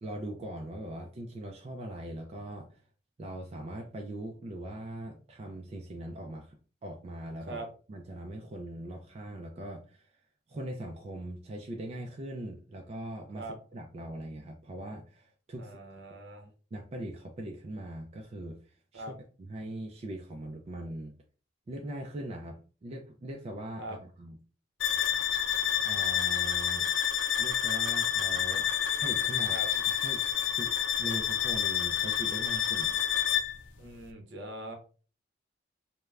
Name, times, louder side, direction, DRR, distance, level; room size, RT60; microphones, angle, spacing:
voice 1, 0.0-2.8 3.2-6.6 6.8-7.6 7.9-10.1 10.5-15.8 16.3-21.1 21.7-24.4 25.3-25.4 25.8-26.9 27.4-29.6 30.0-30.2 30.5-30.7 31.0-33.0, right 1 dB, 35° right, 1 dB, 0.3 m, -41 dB
voice 2, 15.6-16.5 18.9-19.2 23.8-24.0 29.5-29.7 33.8-34.7, right 1 dB, 70° right, 3 dB, 0.7 m, -41 dB
sound 1, 24.8-33.6, left 9 dB, 80° left, 0.4 m, -29 dB
3.2 x 2.1 x 2.3 m, 0.39 s
head